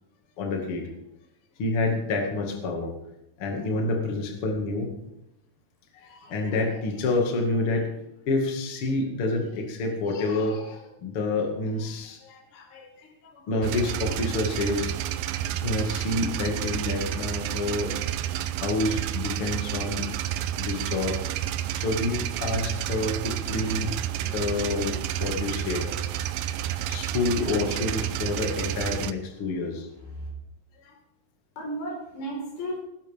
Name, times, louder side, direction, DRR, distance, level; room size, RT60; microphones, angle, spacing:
voice 1, 0.4-0.9 1.6-2.9 3.4-4.9 5.9-7.9 8.2-15.1 15.6-17.9 18.6-20.1 20.6-21.2 21.7-26.0 26.9-29.9 30.8-31.0, left 2 dB, 40° left, 1 dB, 2.4 m, -28 dB
sound 1, 13.6-29.1, right 11 dB, 85° right, 2.1 m, -30 dB
voice 2, 29.4-30.3 31.6-32.8, right 1 dB, 85° left, -1 dB, 7.0 m, -35 dB
20.0 x 12.5 x 3.7 m, 0.86 s
omnidirectional pair, 4.9 m